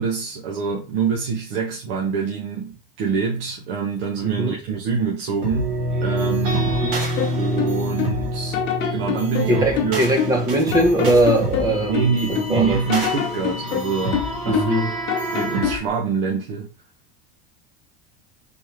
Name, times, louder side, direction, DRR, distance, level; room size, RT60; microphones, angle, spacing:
voice 1, 0.0-6.8 7.4-8.6 8.9-10.0 11.9-14.6 15.3-16.7, right 5 dB, 85° right, 1.2 m, -25 dB
voice 2, 4.2-4.5 6.7-7.0 9.5-12.8 14.4-14.9, right 1 dB, 10° right, 0.6 m, -21 dB
sound 1, 5.4-15.8, right 1 dB, 60° right, 1.7 m, -26 dB
sound 2, 7.2-8.2 8.5-10.4 10.7-12.5 12.9-14.8 15.1-15.9, left 9 dB, 40° left, 0.7 m, -26 dB
4.2 x 3.2 x 3.5 m
supercardioid pair, 170°, 29 cm